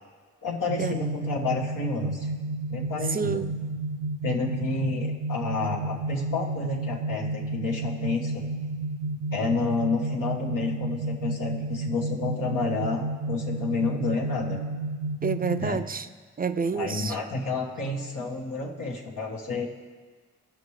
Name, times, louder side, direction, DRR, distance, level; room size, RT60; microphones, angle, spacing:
voice 1, 0.4-2.3 2.7-3.5 4.2-8.4 9.3-14.6 15.6-15.8 16.7-19.7, left 4 dB, 80° left, -3 dB, 1.3 m, -30 dB
sound 1, 0.7-15.7, right 2 dB, 85° right, 0.5 m, -31 dB
voice 2, 3.1-3.5 15.2-16.1 16.4-17.2, right 5 dB, 30° right, 11 dB, 0.4 m, -28 dB
16.5 x 5.8 x 3.2 m, 1.5 s
cardioid pair, 50°, 31 cm